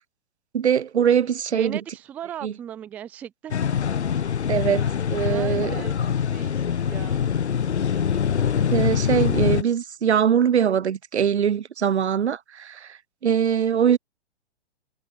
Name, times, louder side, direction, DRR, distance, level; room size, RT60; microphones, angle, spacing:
voice 1, 0.5-1.8 2.4-2.5 4.5-5.8 8.7-14.0, right 8 dB, 80° right, 0.7 m, -22 dB
voice 2, 1.5-3.6 4.5-4.8 5.2-7.3, right 10 dB, 5° right, 0.3 m, -38 dB
sound 1, 3.5-9.6, left 8 dB, 85° left, 0.6 m, -24 dB
figure-of-eight pair, 120°, 33 cm